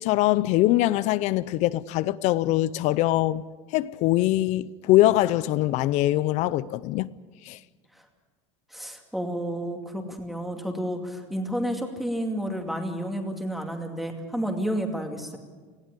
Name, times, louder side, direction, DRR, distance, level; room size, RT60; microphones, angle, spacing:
voice 1, 0.0-3.4 3.7-7.1 7.4-7.6, left 16 dB, 50° left, 0.6 m, -23 dB
voice 2, 8.7-15.4, equal, ahead, 2.4 m, -31 dB
19.0 x 16.0 x 9.9 m
supercardioid pair, 145°, 16 cm